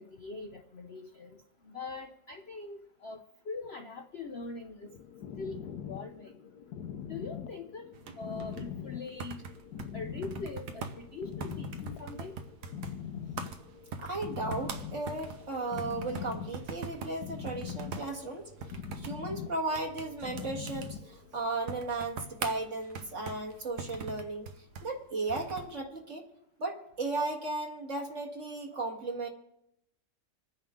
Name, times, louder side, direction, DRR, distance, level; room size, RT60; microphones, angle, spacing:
voice 1, 0.0-1.4 1.7-4.9 5.4-6.4 7.0-7.9 8.2-9.4 9.9-12.3, left 3 dB, 50° left, 4 dB, 0.8 m, -42 dB
sound 1, 4.8-21.5, left 8 dB, 70° left, 1.3 m, -43 dB
sound 2, 7.9-25.8, right 5 dB, 65° right, 1.5 m, -44 dB
voice 2, 14.0-18.5 19.0-26.3 26.6-29.3, right 2 dB, 45° right, 1 dB, 2.0 m, -35 dB
27.5 x 9.8 x 3.7 m, 0.82 s
omnidirectional pair, 1.9 m